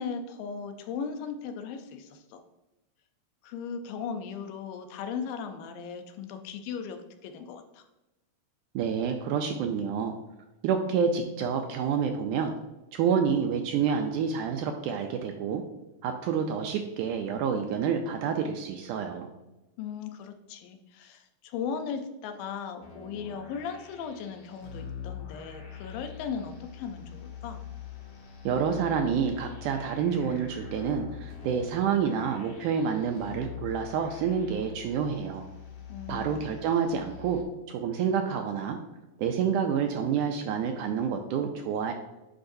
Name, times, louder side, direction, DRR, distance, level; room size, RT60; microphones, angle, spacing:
voice 1, 0.0-2.4 3.4-7.8 19.8-27.6 35.9-36.5, left 6 dB, 85° left, 7 dB, 2.5 m, -37 dB
voice 2, 8.8-10.2 10.6-12.5 12.9-15.6 16.0-19.3 28.5-35.5 36.1-37.4 37.7-38.8 39.2-41.9, right 7 dB, 80° right, 4 dB, 1.8 m, -28 dB
sound 1, 22.8-37.4, left 8 dB, 55° left, 2.0 m, -44 dB
10.5 x 4.8 x 2.6 m, 0.99 s
omnidirectional pair, 4.0 m